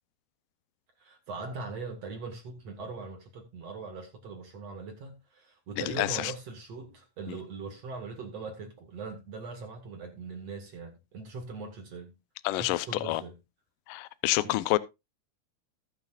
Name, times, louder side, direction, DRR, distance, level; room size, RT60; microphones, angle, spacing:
voice 1, 1.0-12.1 12.5-13.4 14.4-14.6, right 4 dB, 50° right, 2.6 m, -41 dB
voice 2, 5.8-6.3 7.3-7.4 12.4-13.2 13.9-14.8, left 18 dB, 80° left, 2.0 m, -28 dB
19.5 x 6.7 x 2.5 m
omnidirectional pair, 4.6 m